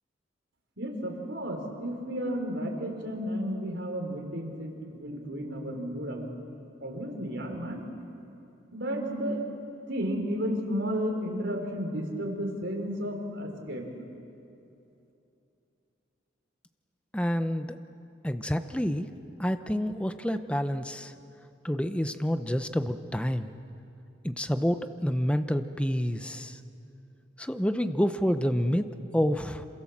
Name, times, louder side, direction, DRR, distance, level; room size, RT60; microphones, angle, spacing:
voice 1, 0.8-6.3 6.8-7.8 8.7-9.4 9.9-13.9, equal, 70° right, 2 dB, 4.5 m, -33 dB
voice 2, 17.1-17.8 18.2-19.1 19.4-21.1 21.6-23.5 24.2-26.6 27.4-28.9 29.1-29.7, equal, 5° left, 9 dB, 0.8 m, -28 dB
27.5 x 27.0 x 7.4 m, 2.8 s
head